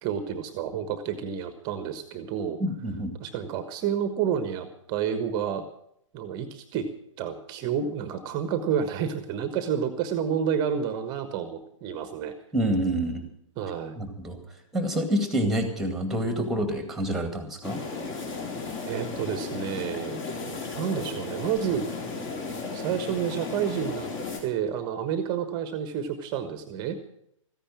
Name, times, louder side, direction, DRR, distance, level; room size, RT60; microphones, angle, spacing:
voice 1, 0.0-2.6 3.2-5.6 6.1-6.9 7.2-12.3 13.6-14.0 18.8-20.2 20.7-21.9 22.7-24.1 24.4-27.0, right 8 dB, 25° right, 10 dB, 1.2 m, -29 dB
voice 2, 2.6-3.1 12.5-13.2 14.0-14.4 14.7-17.8, right 1 dB, ahead, 7 dB, 2.1 m, -27 dB
sound 1, 17.6-24.4, left 4 dB, 30° left, 3.5 m, -35 dB
14.5 x 10.0 x 7.4 m, 0.73 s
figure-of-eight pair, 130°, 17 cm